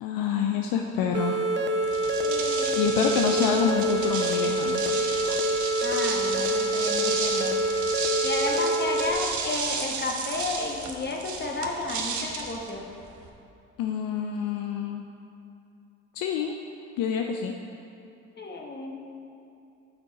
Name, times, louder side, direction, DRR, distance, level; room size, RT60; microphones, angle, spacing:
voice 1, 0.0-1.4 2.8-5.4 13.8-15.0 16.1-16.5 17.0-17.5, left 7 dB, 65° left, 3 dB, 0.6 m, -27 dB
sound 1, 1.1-9.1, right 1 dB, 30° right, 0.8 m, -26 dB
sound 2, 1.8-13.3, right 5 dB, 55° right, 1.1 m, -33 dB
voice 2, 2.2-2.7 5.8-7.6 8.2-12.8 18.4-19.0, left 2 dB, 30° left, 1 dB, 1.4 m, -32 dB
9.7 x 6.2 x 4.1 m, 2.6 s
hypercardioid pair, 55°, 36 cm